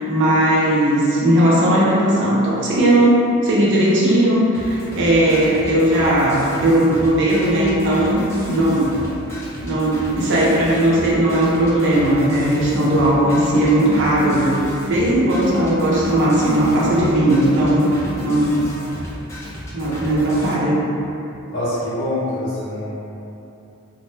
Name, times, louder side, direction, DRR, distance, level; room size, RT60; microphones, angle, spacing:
voice 1, 0.0-9.0 9.6-14.5 14.9-17.9 18.2-18.6 19.7-20.8, right 1 dB, 55° right, -6 dB, 0.5 m, -17 dB
sound 1, 4.5-20.5, equal, 10° left, 0.3 m, -34 dB
voice 2, 21.5-23.0, left 1 dB, 60° left, -11 dB, 0.7 m, -25 dB
2.0 x 2.0 x 3.2 m, 2.8 s
head